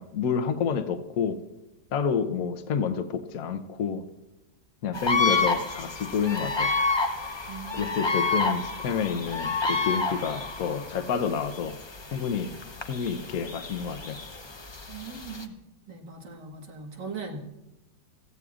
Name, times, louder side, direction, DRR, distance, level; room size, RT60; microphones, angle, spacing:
voice 1, 0.0-1.4 1.9-4.0 4.8-6.7 7.7-11.8 12.1-12.6 12.9-14.2, left 6 dB, 60° left, 9 dB, 1.2 m, -29 dB
sound 1, 4.9-15.4, left 3 dB, 40° left, 0.3 m, -30 dB
voice 2, 7.5-7.9 14.9-15.6 15.9-17.4, right 4 dB, 80° right, 1 dB, 2.3 m, -39 dB
28.5 x 15.0 x 2.5 m, 0.97 s
omnidirectional pair, 1.8 m